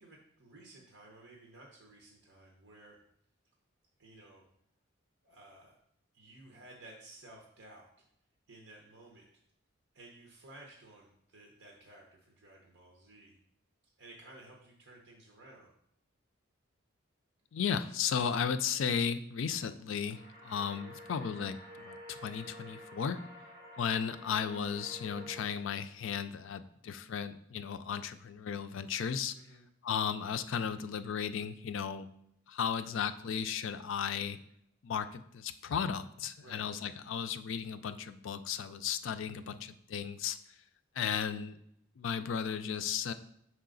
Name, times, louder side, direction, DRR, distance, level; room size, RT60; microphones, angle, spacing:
voice 1, 0.0-3.0 4.0-4.4 5.2-5.8 6.1-7.9 8.5-9.3 9.9-13.4 14.0-15.7 29.3-29.7 36.4-36.7, right 2 dB, 65° right, -1 dB, 0.9 m, -55 dB
voice 2, 17.5-23.2 23.8-29.3 29.8-32.1 32.5-34.4 34.8-40.4 41.0-41.6 42.0-43.1, left 7 dB, 65° left, 11 dB, 0.4 m, -35 dB
sound 1, 20.1-25.4, equal, 45° right, 2.6 m, -50 dB
5.6 x 4.8 x 3.9 m, 0.73 s
head